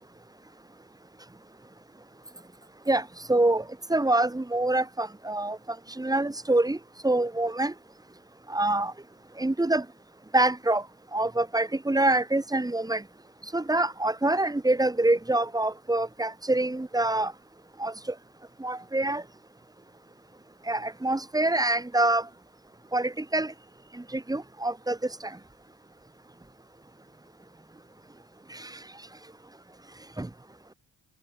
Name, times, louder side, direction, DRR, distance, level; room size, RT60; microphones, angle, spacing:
voice 1, 2.9-3.6 3.9-5.6 6.0-6.8 7.0-7.7 8.5-8.9 9.4-9.8 10.3-10.8 11.1-13.0 13.5-17.3 17.8-17.9 18.6-19.2 20.7-22.3 22.9-23.5 23.9-25.0 25.2-25.4 28.5-28.7 30.2-30.3, right 2 dB, 10° right, 1.1 m, -25 dB
supercardioid pair, 50°, 44 cm